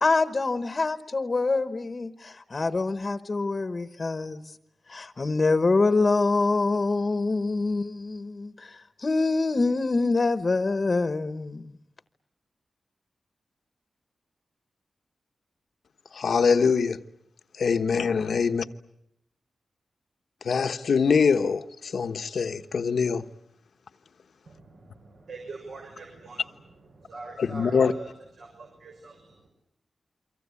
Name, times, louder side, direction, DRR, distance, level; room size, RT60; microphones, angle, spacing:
voice 1, 0.0-4.6 4.9-11.7, left 3 dB, 35° left, 1.1 m, -25 dB
voice 2, 16.1-17.0 17.6-18.6 20.4-23.2 27.4-27.9, left 5 dB, 75° left, 1.1 m, -23 dB
voice 3, 24.4-29.5, right 3 dB, 85° right, 6.4 m, -44 dB
28.5 x 24.5 x 8.4 m
wide cardioid pair, 160°, 0 cm